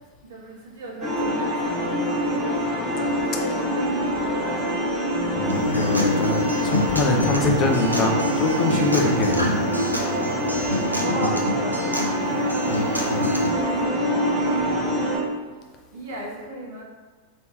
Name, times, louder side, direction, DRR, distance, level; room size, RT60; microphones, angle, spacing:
voice 1, 0.2-2.2 3.0-4.8 5.8-5.9 6.7-6.9 9.7-12.0 13.5-14.7 15.9-16.8, right 1 dB, 60° right, -3 dB, 1.1 m, -36 dB
sound 1, 1.0-15.2, equal, 15° left, 1.2 m, -25 dB
voice 2, 5.4-9.5 12.7-12.8, left 2 dB, 35° left, 1 dB, 0.6 m, -24 dB
Acoustic guitar, 5.5-13.5, left 1 dB, 85° right, 0.6 m, -27 dB
3.2 x 3.1 x 4.3 m, 1.4 s
figure-of-eight pair, 90°, 0 cm